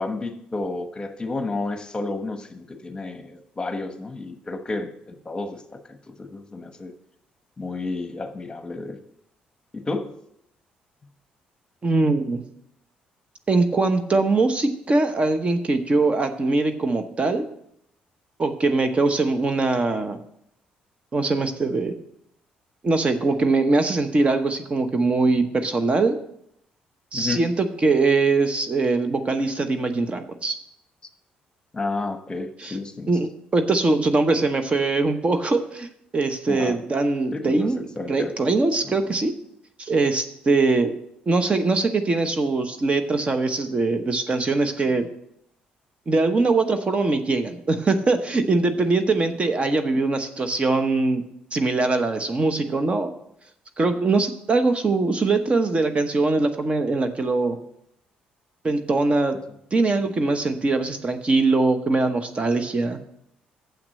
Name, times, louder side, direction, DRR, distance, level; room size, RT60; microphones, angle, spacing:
voice 1, 0.0-6.9 7.6-9.0 9.7-10.1 27.1-27.4 31.7-33.1 36.5-36.8 37.3-37.7 38.0-38.3, left 3 dB, 25° left, 8 dB, 1.1 m, -31 dB
voice 2, 11.8-12.4 13.5-17.5 18.4-20.2 21.1-21.9 22.8-26.2 27.1-30.5 32.6-32.8 33.1-35.9 36.1-39.3 39.8-40.9 41.3-45.1 46.1-51.2 51.5-53.2 53.8-57.6 58.6-59.4 59.7-63.0, right 3 dB, 35° right, 8 dB, 1.0 m, -22 dB
7.4 x 6.0 x 7.5 m, 0.75 s
supercardioid pair, 75°, 3 cm